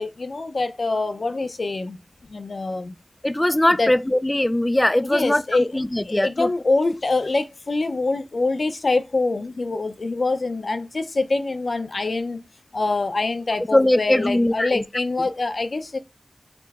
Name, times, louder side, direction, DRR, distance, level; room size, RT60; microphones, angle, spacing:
voice 1, 0.0-2.0 2.3-2.9 3.8-3.9 5.0-5.7 6.0-12.4 12.7-16.0, left 3 dB, 65° left, 0.6 m, -25 dB
voice 2, 3.2-5.4 5.7-6.5 13.7-14.8, left 1 dB, 20° left, 0.3 m, -20 dB
4.3 x 2.1 x 4.1 m
wide cardioid pair, 65°, 0 cm